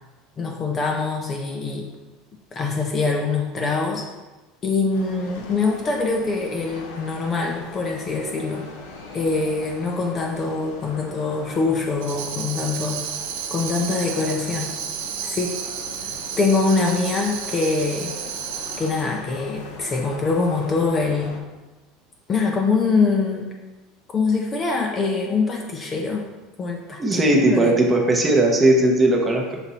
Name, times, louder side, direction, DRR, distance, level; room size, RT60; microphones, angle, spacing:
voice 1, 0.4-1.9 2.5-4.1 4.6-8.6 9.1-13.0 13.5-14.7 15.2-15.5 16.4-18.1 18.8-21.4 22.3-23.5 24.1-26.2 26.6-27.8, left 4 dB, 20° left, 1 dB, 0.5 m, -24 dB
sound 1, 4.9-21.4, left 3 dB, 85° left, 1.0 m, -40 dB
Tambourine, 12.0-19.1, right 8 dB, 80° right, 0.6 m, -32 dB
voice 2, 27.0-29.6, right 1 dB, 15° right, 1 dB, 0.7 m, -18 dB
5.9 x 3.9 x 4.1 m, 1.2 s
cardioid pair, 170°, 0 cm